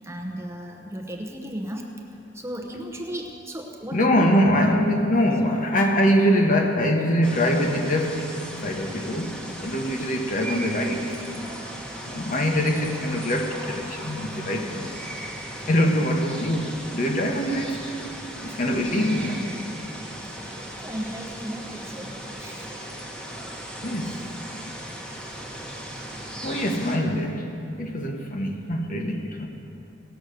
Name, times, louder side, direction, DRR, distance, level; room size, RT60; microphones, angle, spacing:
voice 1, 0.0-1.9 2.3-4.3 20.8-22.7, equal, 15° right, 1 dB, 0.8 m, -35 dB
voice 2, 3.9-8.3 8.6-11.5 12.0-14.9 15.7-18.0 18.4-19.4 23.8-24.2 26.4-27.5 27.8-29.5, equal, 45° left, 2 dB, 1.1 m, -23 dB
sound 1, 7.2-27.0, right 1 dB, 5° left, 1.1 m, -37 dB
17.5 x 6.2 x 6.6 m, 2.7 s
head